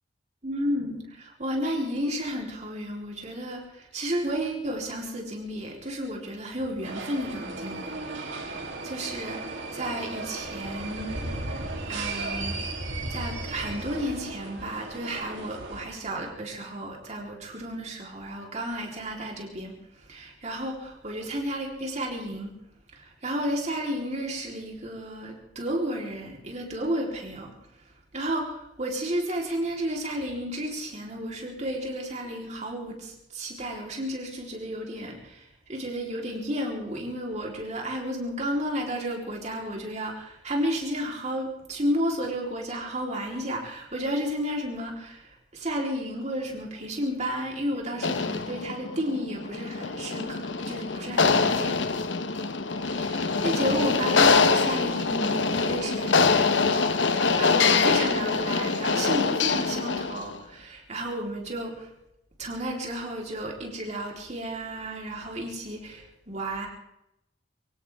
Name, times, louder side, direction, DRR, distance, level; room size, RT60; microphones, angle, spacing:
voice 1, 0.4-11.2 11.9-12.6 13.1-19.8 20.1-22.6 22.9-27.6 28.1-51.8 52.8-61.9 62.4-66.7, equal, 40° right, 0 dB, 3.8 m, -32 dB
sound 1, 6.8-15.8, right 2 dB, 90° right, 3.1 m, -35 dB
sound 2, 48.0-60.3, left 4 dB, 85° left, 1.0 m, -24 dB
24.0 x 16.5 x 3.6 m, 0.84 s
head